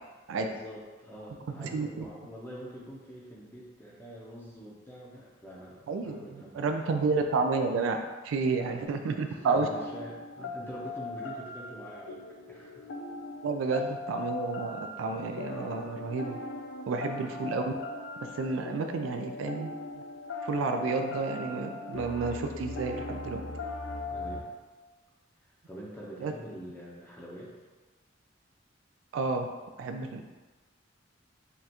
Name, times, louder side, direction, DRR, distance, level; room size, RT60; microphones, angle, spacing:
voice 1, 0.3-7.1 8.6-8.9 9.3-12.2 12.5-12.9 13.6-13.8 17.0-17.3 24.1-24.5 25.7-27.5, equal, 10° left, -5 dB, 0.6 m, -45 dB
voice 2, 1.6-2.0 5.9-8.0 8.2-9.7 13.4-16.4 16.9-17.7 18.3-19.7 20.0-20.1 20.4-23.4 26.2-26.3 29.1-29.5 29.8-30.2, right 4 dB, 75° right, 5 dB, 0.3 m, -30 dB
sound 1, 9.0-24.4, left 2 dB, 65° left, 0.4 m, -39 dB
5.1 x 2.3 x 2.9 m, 1.3 s
head